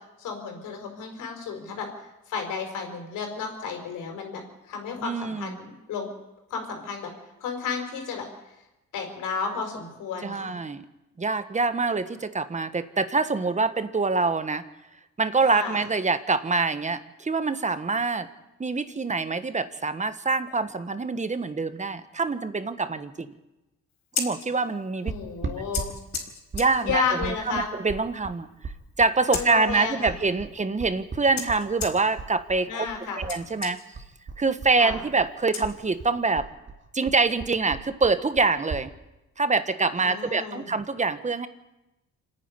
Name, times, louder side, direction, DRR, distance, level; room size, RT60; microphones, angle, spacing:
voice 1, 0.2-1.9 2.3-6.1 6.5-7.1 7.4-8.3 8.9-10.5 15.5-15.8 25.0-26.0 26.8-27.7 29.3-30.1 32.6-33.2 34.8-35.0 40.0-40.7, left 5 dB, 85° left, 4 dB, 5.1 m, -32 dB
voice 2, 5.0-5.5 10.2-10.9 11.2-14.6 15.2-18.3 18.6-23.3 24.2-25.1 25.4-25.6 26.5-28.7 29.0-32.9 33.2-33.8 34.4-36.5 36.9-38.9 39.4-41.5, right 3 dB, 25° right, 12 dB, 1.3 m, -25 dB
Scissors, 23.9-36.3, left 6 dB, 65° left, 4.4 m, -40 dB
sound 1, 25.1-33.4 33.6-35.3 35.6-38.9, right 4 dB, 40° right, 2.6 m, -37 dB
27.0 x 10.0 x 9.7 m, 0.99 s
cardioid pair, 90°, 30 cm